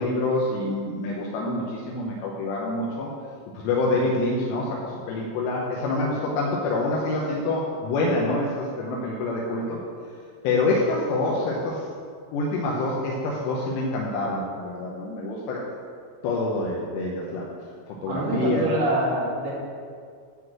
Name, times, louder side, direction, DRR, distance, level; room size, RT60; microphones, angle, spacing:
voice 1, 0.0-3.1 3.6-9.8 10.4-11.8 12.3-15.6 16.2-17.5 18.0-18.7, left 2 dB, 85° left, -4 dB, 3.1 m, -26 dB
voice 2, 18.1-19.5, right 1 dB, 55° right, -5 dB, 3.3 m, -25 dB
10.5 x 3.9 x 7.5 m, 2.2 s
omnidirectional pair, 5.0 m